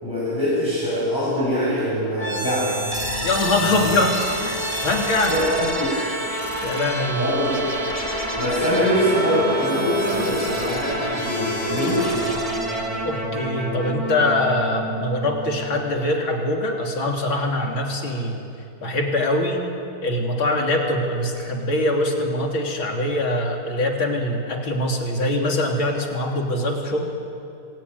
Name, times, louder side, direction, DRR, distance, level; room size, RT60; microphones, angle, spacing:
voice 1, 0.0-2.8 5.3-6.0 6.7-6.8 7.1-7.7 8.4-12.1, equal, 10° left, -8 dB, 7.3 m, -23 dB
sound 1, 2.2-16.1, right 1 dB, 15° right, 3.4 m, -28 dB
voice 2, 3.2-5.3 6.6-7.3 13.0-18.4 18.8-19.7 20.0-27.1, left 1 dB, 70° left, 1 dB, 3.9 m, -23 dB
26.0 x 20.0 x 9.6 m, 2.6 s
omnidirectional pair, 2.3 m